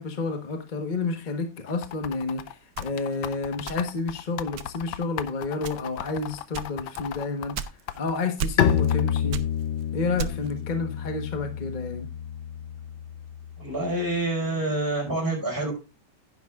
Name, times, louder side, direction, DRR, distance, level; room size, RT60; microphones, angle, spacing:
voice 1, 0.0-7.7 7.9-9.4 9.9-12.1, left 3 dB, 30° left, 1.2 m, -30 dB
sound 1, 1.7-8.2 8.7-9.4, left 11 dB, 85° left, 1.3 m, -36 dB
sound 2, 2.8-4.1 4.6-5.0 5.6-6.1 6.5-8.1 8.4-9.0 9.3-10.6, right 8 dB, 85° right, 1.4 m, -35 dB
Bowed string instrument, 8.6-14.2, left 8 dB, 55° left, 0.7 m, -28 dB
voice 2, 13.6-15.7, right 2 dB, 10° right, 5.2 m, -27 dB
11.0 x 10.5 x 2.4 m
omnidirectional pair, 1.9 m